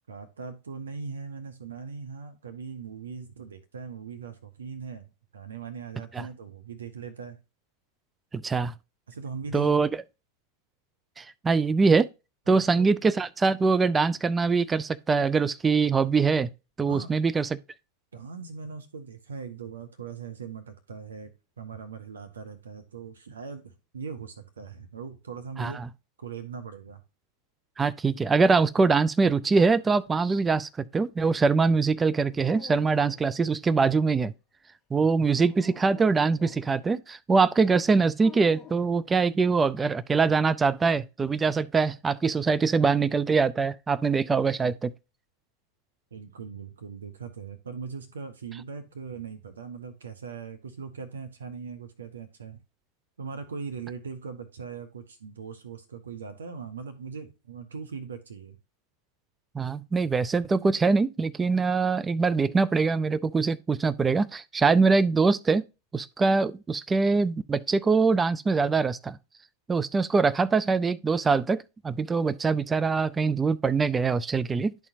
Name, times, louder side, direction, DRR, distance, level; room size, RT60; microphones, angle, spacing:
voice 1, 0.1-7.4 9.1-9.7 12.5-12.9 16.9-17.1 18.1-25.8 26.2-27.0 46.1-52.6 53.2-58.6, right 5 dB, 70° right, 0.8 m, -40 dB
voice 2, 8.3-8.7 9.5-9.9 11.2-12.1 12.5-16.5 16.8-17.6 25.6-25.8 27.8-34.3 34.9-44.9 59.6-65.6 65.9-69.2 69.7-74.7, right 4 dB, 15° right, 0.3 m, -23 dB
Dog, 32.3-33.3 35.2-36.7 38.2-39.0, left 9 dB, 20° left, 1.1 m, -48 dB
12.0 x 4.2 x 2.5 m
figure-of-eight pair, 90°, 0 cm